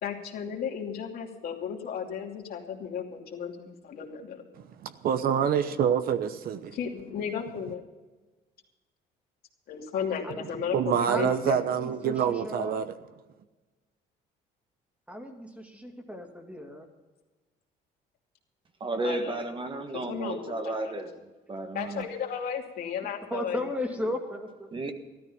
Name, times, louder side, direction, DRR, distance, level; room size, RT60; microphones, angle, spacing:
voice 1, 0.0-4.4 6.7-7.8 9.7-11.8 19.0-19.4 19.9-20.9 21.7-23.6, left 7 dB, 65° left, 2.7 m, -34 dB
voice 2, 4.8-6.7 10.7-12.8, right 8 dB, 60° right, 1.0 m, -26 dB
voice 3, 11.1-12.8 15.1-16.9 23.3-24.8, left 1 dB, 10° right, 2.4 m, -35 dB
voice 4, 18.8-22.1 24.7-24.9, right 2 dB, 30° right, 1.5 m, -33 dB
14.0 x 13.0 x 5.6 m
cardioid pair, 110°, 17 cm